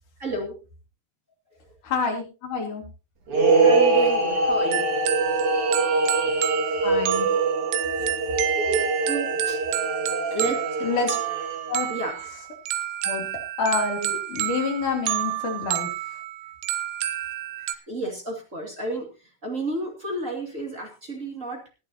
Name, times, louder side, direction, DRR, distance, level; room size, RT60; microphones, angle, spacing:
voice 1, 0.2-0.5 3.6-4.9 9.0-9.6 10.3-10.5 11.1-11.2 11.9-12.1 17.6-19.1 19.4-21.6, right 2 dB, 35° right, 1 dB, 1.3 m, -31 dB
voice 2, 1.8-2.8 6.8-7.3 10.1-10.2 10.8-11.1 11.7-11.9 13.0-13.2 13.6-15.9, left 4 dB, 45° left, 2 dB, 3.9 m, -27 dB
sound 1, 3.3-11.9, right 3 dB, 50° right, 1.6 m, -23 dB
sound 2, 4.7-17.7, right 14 dB, 75° right, 3.0 m, -30 dB
20.0 x 11.5 x 2.8 m, 0.32 s
omnidirectional pair, 5.9 m